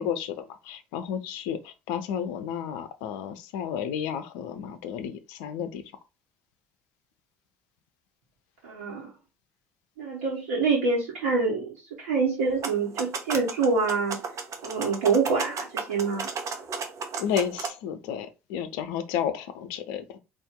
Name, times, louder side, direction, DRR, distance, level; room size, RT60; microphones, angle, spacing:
voice 1, 0.0-5.8 17.2-20.2, left 8 dB, 70° left, 0.6 m, -32 dB
voice 2, 8.6-9.1 10.0-14.2 14.6-16.3, right 4 dB, 75° right, 1.2 m, -26 dB
sound 1, 12.5-17.7, right 5 dB, 45° right, 1.1 m, -34 dB
4.3 x 2.7 x 3.7 m
figure-of-eight pair, 55°, 7 cm